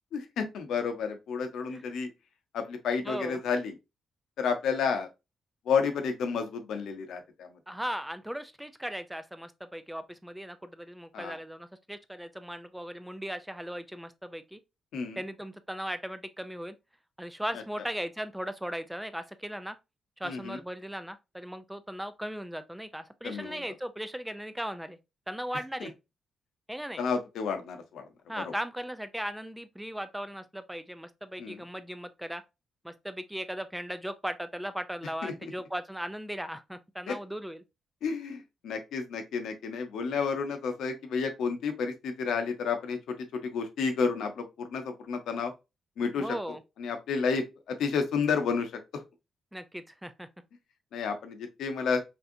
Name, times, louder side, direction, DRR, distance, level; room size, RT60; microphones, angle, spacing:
voice 1, 0.1-2.1 2.5-3.7 4.4-5.1 5.7-7.5 11.1-11.3 14.9-15.2 20.2-20.6 23.2-23.6 25.8-25.9 27.0-28.0 28.4-28.5 31.4-31.6 35.2-35.5 37.1-37.2 38.0-45.5 46.0-48.7 50.9-52.0, left 5 dB, 80° left, 1.0 m, -31 dB
voice 2, 3.0-3.4 7.7-14.6 15.2-16.8 17.2-19.8 20.2-25.0 25.3-25.9 26.7-27.0 28.3-32.4 32.8-37.6 46.2-46.6 49.5-50.3, equal, 5° right, 0.3 m, -37 dB
5.5 x 2.7 x 2.6 m
wide cardioid pair, 170°, 0 cm